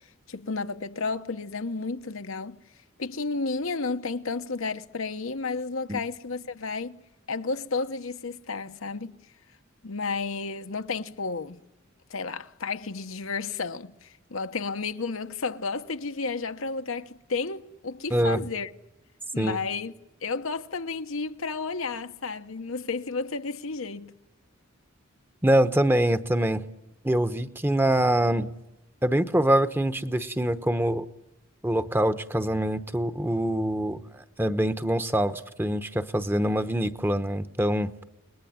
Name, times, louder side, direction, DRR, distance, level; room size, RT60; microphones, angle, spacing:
voice 1, 0.3-2.6 3.0-7.0 7.3-9.2 9.8-11.6 12.1-18.7 19.3-19.9 20.2-24.1, left 4 dB, 80° left, 1.1 m, -32 dB
voice 2, 18.1-18.4 19.4-19.6 25.4-26.6 27.0-28.5 29.0-31.0 31.6-37.9, right 1 dB, 10° right, 1.0 m, -24 dB
30.0 x 21.0 x 9.4 m
head